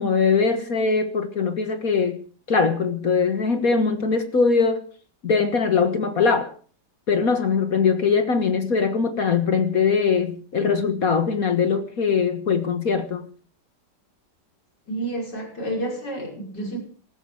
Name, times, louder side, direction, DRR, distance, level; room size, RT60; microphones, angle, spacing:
voice 1, 0.0-2.2 2.5-4.8 5.2-6.5 7.1-13.3, left 5 dB, 55° left, 8 dB, 1.9 m, -21 dB
voice 2, 14.9-16.8, right 1 dB, 75° left, 0 dB, 6.5 m, -30 dB
19.5 x 14.5 x 4.9 m, 0.43 s
omnidirectional pair, 1.9 m